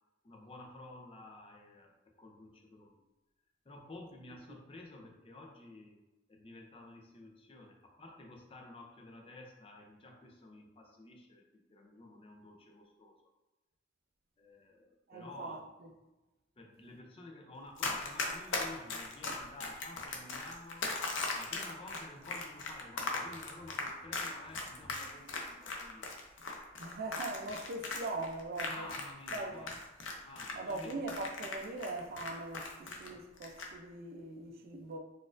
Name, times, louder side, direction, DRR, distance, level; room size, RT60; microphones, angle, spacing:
voice 1, 0.2-3.0 3.6-6.0 6.3-13.2 14.4-15.6 16.6-20.8 21.3-26.2 28.7-29.7 30.2-31.0 33.1-33.2, left 2 dB, 30° left, 0.5 m, -51 dB
voice 2, 15.1-15.9 26.8-28.9 29.3-29.7 30.5-35.0, right 2 dB, 50° right, 0.4 m, -41 dB
Run, 17.8-29.4 29.7-33.1 33.4-33.7, left 3 dB, 75° left, 0.5 m, -38 dB
4.1 x 2.4 x 2.5 m
head